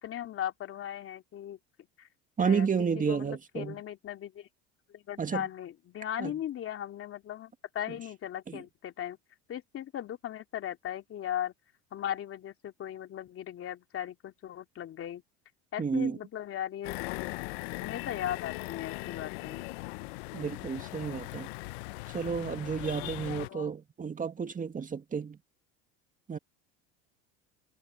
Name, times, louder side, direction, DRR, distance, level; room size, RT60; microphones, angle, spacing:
voice 1, 0.0-1.6 2.0-2.1 2.4-2.7 2.9-4.5 4.9-9.2 9.5-11.5 11.9-15.2 15.7-17.3 17.8-19.7 23.4-23.7, left 11 dB, 45° left, 3.0 m, -38 dB
voice 2, 2.4-3.8 5.2-5.4 6.2-6.3 8.5-8.6 15.8-16.2 20.3-21.5 22.1-25.4 26.3-26.4, right 6 dB, 25° right, 2.0 m, -31 dB
sound 1, 16.8-23.5, left 23 dB, 75° left, 0.8 m, -39 dB
supercardioid pair, 90°, 31 cm